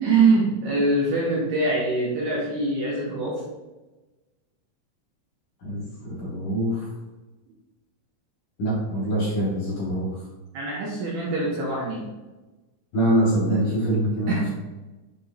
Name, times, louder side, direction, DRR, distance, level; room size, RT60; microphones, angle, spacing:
voice 1, 0.0-3.4 10.5-12.0 14.3-14.5, right 3 dB, 70° right, -5 dB, 2.6 m, -23 dB
voice 2, 5.6-6.9 8.6-10.1 12.9-14.5, right 1 dB, 50° left, -7 dB, 3.0 m, -24 dB
7.0 x 3.6 x 4.1 m, 1.1 s
omnidirectional pair, 5.6 m